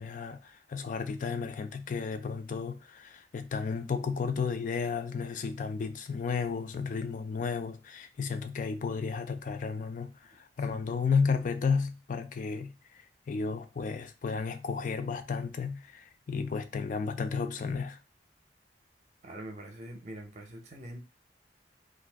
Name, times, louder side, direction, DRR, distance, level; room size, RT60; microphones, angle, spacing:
voice 1, 0.0-18.0, left 5 dB, 45° left, 0.4 m, -33 dB
voice 2, 19.2-21.0, right 1 dB, 40° right, 0.6 m, -44 dB
2.6 x 2.3 x 3.4 m
head